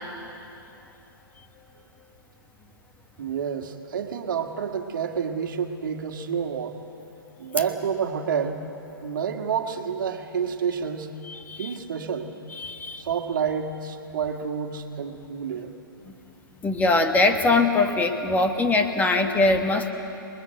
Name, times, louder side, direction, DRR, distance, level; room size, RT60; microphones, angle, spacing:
voice 1, 3.2-6.8 7.4-8.6 9.0-11.1 11.6-12.3 13.0-15.7, right 7 dB, 60° right, 5 dB, 1.9 m, -29 dB
voice 2, 11.3-11.7 12.5-13.0 16.6-19.9, left 2 dB, 15° left, 5 dB, 1.4 m, -22 dB
27.5 x 21.0 x 7.9 m, 2.9 s
figure-of-eight pair, 115°, 12 cm